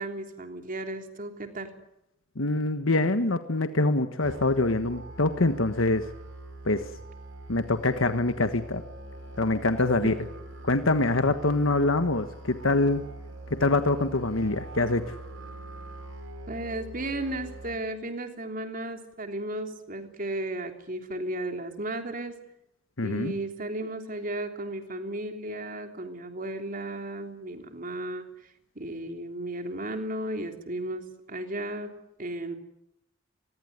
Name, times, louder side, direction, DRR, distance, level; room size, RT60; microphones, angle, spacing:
voice 1, 0.0-1.7 10.0-10.1 16.5-22.4 23.0-28.2 28.7-32.5, right 1 dB, 45° right, 6 dB, 3.3 m, -34 dB
voice 2, 2.3-6.1 6.6-6.9 7.5-8.8 9.4-10.1 10.6-13.0 13.5-15.2 23.0-23.3, left 2 dB, 90° left, 9 dB, 1.4 m, -25 dB
Musical instrument, 4.2-17.7, right 1 dB, 80° right, 6.9 m, -43 dB
26.0 x 21.0 x 9.5 m, 0.83 s
head